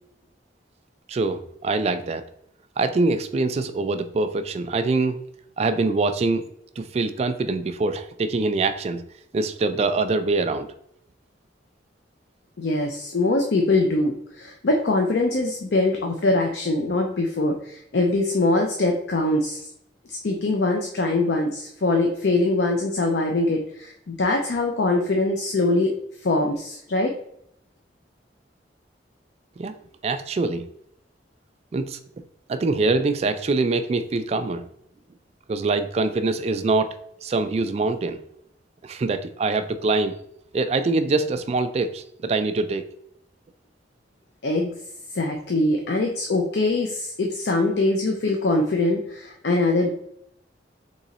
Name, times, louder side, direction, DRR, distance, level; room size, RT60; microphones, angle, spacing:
voice 1, 1.1-2.2 2.8-5.2 5.6-6.5 6.8-9.1 9.3-10.7 29.6-29.7 30.0-30.7 31.7-32.0 32.5-34.7 35.5-38.2 38.8-40.2 40.5-42.8, right 3 dB, 35° right, 10 dB, 0.3 m, -24 dB
voice 2, 12.6-19.7 20.1-25.9 26.2-27.1 44.4-44.7 45.1-49.9, left 2 dB, 65° left, 2 dB, 0.5 m, -23 dB
3.8 x 3.0 x 4.0 m, 0.72 s
head